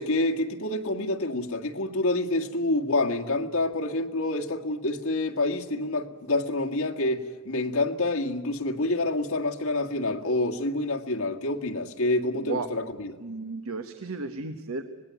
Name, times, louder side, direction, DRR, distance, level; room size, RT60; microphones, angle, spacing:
voice 1, 0.0-13.1, left 2 dB, 85° left, 1.9 m, -27 dB
voice 2, 13.2-14.8, right 3 dB, 80° right, 1.3 m, -34 dB
25.0 x 19.0 x 9.5 m
head